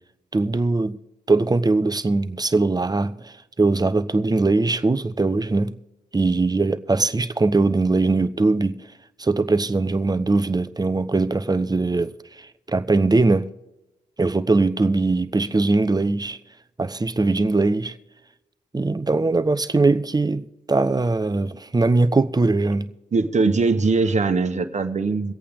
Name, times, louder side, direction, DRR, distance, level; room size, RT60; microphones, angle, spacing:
voice 1, 0.3-1.0 1.3-5.7 6.1-8.8 9.2-12.1 12.7-13.5 14.2-16.4 16.8-17.9 18.7-22.9, right 3 dB, 20° right, 0.9 m, -21 dB
voice 2, 23.1-25.3, right 4 dB, 40° right, 1.4 m, -21 dB
24.5 x 8.5 x 3.6 m
hypercardioid pair, 40°, 18 cm